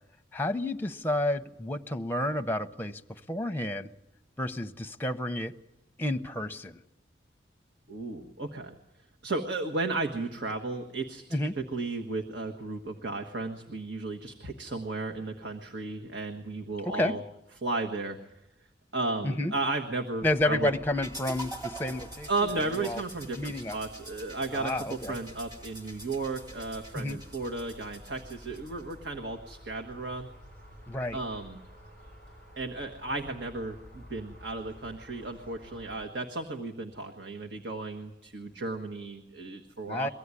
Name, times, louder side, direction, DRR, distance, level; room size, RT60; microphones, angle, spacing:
voice 1, 0.3-3.9 4.4-5.5 6.0-6.8 11.3-11.6 16.9-17.2 19.2-19.5 20.2-22.5 22.7-23.0 23.4-23.8 24.5-25.1 26.9-27.2 30.9-31.2 39.9-40.1, left 1 dB, 10° left, 7 dB, 0.7 m, -30 dB
voice 2, 7.9-8.8 9.2-17.2 17.6-18.2 18.9-20.7 22.3-30.3 31.1-31.6 32.6-40.1, right 3 dB, 70° right, 4 dB, 1.5 m, -34 dB
sound 1, 20.2-36.1, equal, 45° right, 5.7 m, -51 dB
sound 2, 21.0-29.1, right 1 dB, 20° right, 1.9 m, -45 dB
23.5 x 16.0 x 9.8 m, 0.91 s
head